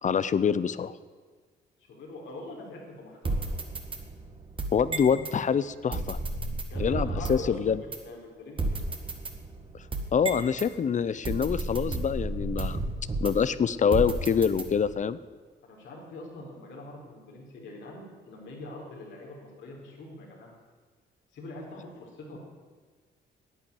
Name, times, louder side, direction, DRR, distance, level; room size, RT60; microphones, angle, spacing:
voice 1, 0.0-0.9 4.7-6.2 6.8-7.8 10.1-12.8 13.2-15.2, left 7 dB, 40° left, 16 dB, 0.6 m, -25 dB
voice 2, 1.9-3.6 6.6-8.8 15.6-20.5 21.3-22.4, left 2 dB, 75° left, -1 dB, 4.1 m, -44 dB
sound 1, 3.2-5.4 5.9-7.5 7.9-8.0 8.6-10.7 11.2-13.5 13.9-15.0, right 2 dB, 25° right, 1.8 m, -32 dB
11.0 x 9.1 x 8.3 m, 1.5 s
cardioid pair, 90°, 20 cm